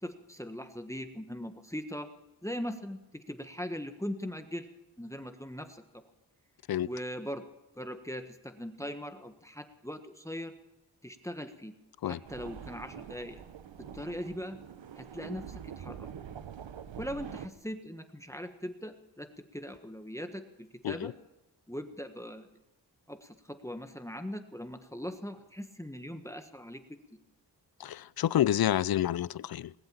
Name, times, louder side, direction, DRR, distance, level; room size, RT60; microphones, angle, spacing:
voice 1, 0.0-2.1 2.4-4.7 5.0-5.8 6.8-7.4 7.7-10.5 11.0-11.7 12.0-13.4 13.8-14.6 15.0-16.1 17.0-21.1 21.7-22.5 23.1-27.0, equal, 5° left, 7 dB, 1.4 m, -40 dB
sound 1, 12.2-17.5, right 8 dB, 80° right, 1.0 m, -45 dB
voice 2, 27.8-29.7, left 11 dB, 55° left, 22 dB, 0.5 m, -29 dB
20.5 x 7.8 x 9.0 m, 0.95 s
cardioid pair, 50°, 45 cm